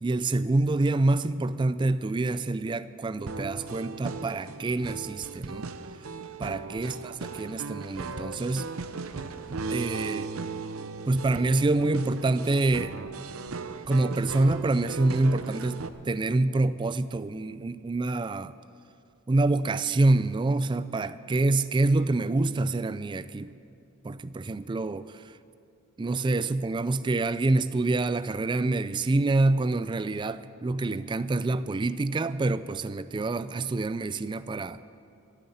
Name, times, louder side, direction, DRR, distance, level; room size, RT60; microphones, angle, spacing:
voice 1, 0.0-5.7 6.4-8.7 9.7-10.3 11.1-13.0 13.9-18.5 19.3-23.5 24.0-25.3 26.0-34.8, right 2 dB, 20° right, 0.3 m, -26 dB
sound 1, 3.3-15.9, right 4 dB, 80° right, 0.6 m, -37 dB
14.0 x 7.9 x 9.8 m
head